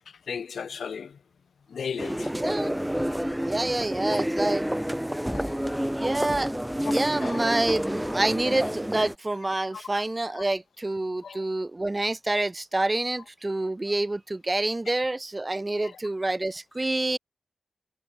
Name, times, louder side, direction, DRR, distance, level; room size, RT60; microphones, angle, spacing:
voice 1, 0.3-1.2 1.7-2.3 5.3-5.5 7.2-7.5 9.7-9.9 10.3-10.4 11.2-11.4, left 6 dB, 75° left, 0.5 m, -35 dB
sound 1, 2.0-9.1, equal, 5° right, 2.5 m, -29 dB
voice 2, 2.3-2.8 3.4-4.7 6.0-6.5 6.9-17.2, right 2 dB, 25° right, 2.0 m, -27 dB
cardioid pair, 55°, 0 cm